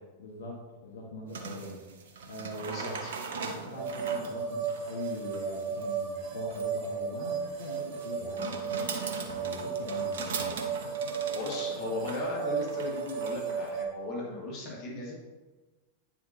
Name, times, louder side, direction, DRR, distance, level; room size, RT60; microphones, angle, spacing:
voice 1, 0.2-2.9 3.3-8.8 9.2-10.7, left 2 dB, 65° left, -1 dB, 1.4 m, -42 dB
sound 1, 1.3-13.7, right 5 dB, 60° right, 0.9 m, -41 dB
voice 2, 2.7-3.1 11.3-15.1, left 2 dB, 40° left, -3 dB, 2.4 m, -37 dB
sound 2, 3.8-13.9, right 6 dB, 40° right, 1.5 m, -34 dB
9.4 x 7.1 x 2.8 m, 1.2 s
figure-of-eight pair, 90°, 0 cm